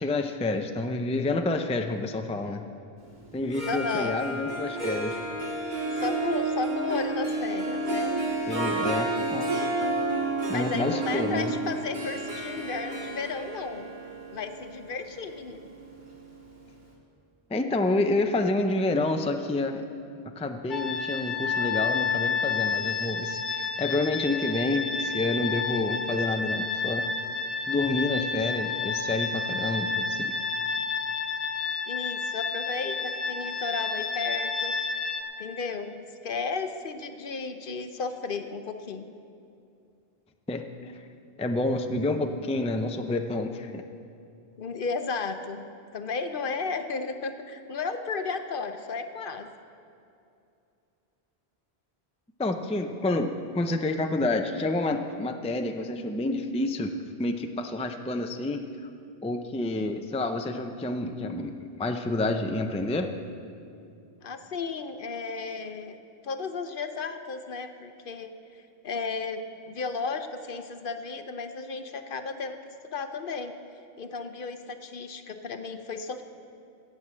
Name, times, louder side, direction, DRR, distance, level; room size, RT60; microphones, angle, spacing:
voice 1, 0.0-2.6 3.3-5.2 5.7-5.8 8.5-9.5 10.5-11.6 17.5-19.9 20.4-27.1 27.7-30.3 40.5-40.9 41.4-43.8 52.4-58.6 59.2-63.1, left 2 dB, 10° left, 6 dB, 0.4 m, -29 dB
Harp, 3.4-16.3, right 2 dB, 45° right, 1.9 m, -31 dB
voice 2, 3.7-4.1 5.9-8.1 10.5-13.8 14.3-15.6 31.9-34.8 35.4-39.1 44.6-45.6 45.9-49.5 64.2-66.0 66.2-68.3 68.8-72.6 72.8-73.5 74.0-76.2, left 4 dB, 60° left, 8 dB, 0.9 m, -34 dB
sound 1, 20.7-35.2, left 4 dB, 25° left, 0.9 m, -30 dB
17.0 x 6.4 x 7.5 m, 2.6 s
omnidirectional pair, 1.0 m